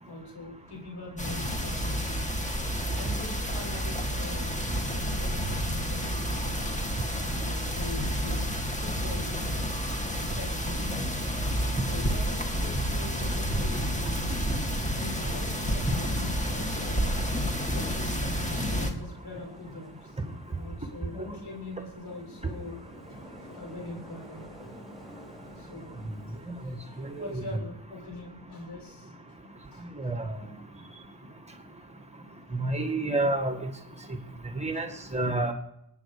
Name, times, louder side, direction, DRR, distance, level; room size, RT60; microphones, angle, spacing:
voice 1, 0.1-2.4 3.0-8.5 8.8-9.6 10.2-10.9 11.6-14.3 14.9-17.2 17.7-20.2 20.5-22.8 23.1-24.5 25.6-26.0 26.3-29.1 29.7-29.9 34.4-34.8, left 2 dB, 70° left, 1 dB, 6.9 m, -43 dB
sound 1, 1.2-18.9, equal, 20° left, 2.4 m, -30 dB
sound 2, 13.2-27.6, equal, ahead, 5.3 m, -50 dB
voice 2, 30.0-30.4 32.5-33.6 34.6-35.5, right 2 dB, 15° right, 5 dB, 1.9 m, -29 dB
23.5 x 9.7 x 5.0 m, 0.77 s
cardioid pair, 90°, 41 cm